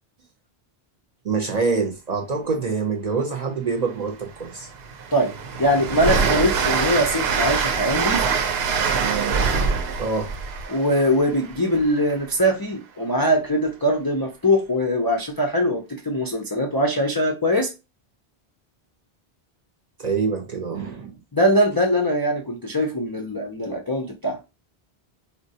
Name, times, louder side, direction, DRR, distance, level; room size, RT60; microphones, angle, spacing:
voice 1, 1.2-4.7 10.0-10.3 20.0-21.2, right 4 dB, 50° right, 0.6 m, -25 dB
Train, 3.9-4.0 4.4-12.1, right 5 dB, 75° right, 0.8 m, -24 dB
voice 2, 5.6-8.3 10.7-17.7 21.3-24.4, equal, 40° left, 0.3 m, -22 dB
3.6 x 2.1 x 2.7 m
omnidirectional pair, 1.1 m